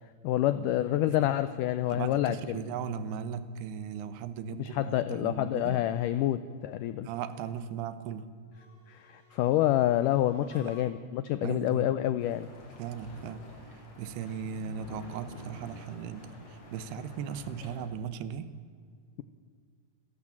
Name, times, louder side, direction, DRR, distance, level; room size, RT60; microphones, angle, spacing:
voice 1, 0.2-2.6 4.6-7.1 8.9-12.5, left 13 dB, 90° left, 13 dB, 1.8 m, -28 dB
voice 2, 1.9-5.8 7.0-8.3 10.5-10.9 11.4-11.9 12.8-18.5, right 7 dB, 90° right, 13 dB, 3.1 m, -38 dB
sound 1, 8.4-11.2, left 3 dB, 50° right, 6.7 m, -56 dB
sound 2, 12.2-17.9, left 1 dB, 45° left, 5.1 m, -49 dB
28.0 x 12.5 x 7.6 m, 2.1 s
omnidirectional pair, 4.5 m